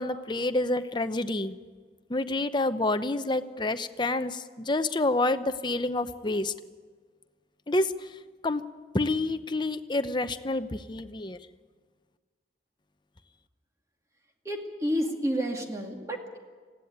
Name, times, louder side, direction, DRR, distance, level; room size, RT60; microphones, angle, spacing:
voice 1, 0.0-1.6 2.1-6.5 7.7-7.9 8.4-8.6 8.9-11.4, left 2 dB, 25° left, 10 dB, 0.8 m, -28 dB
voice 2, 14.4-16.4, equal, 20° right, 2 dB, 2.3 m, -30 dB
20.0 x 15.5 x 9.5 m, 1.5 s
head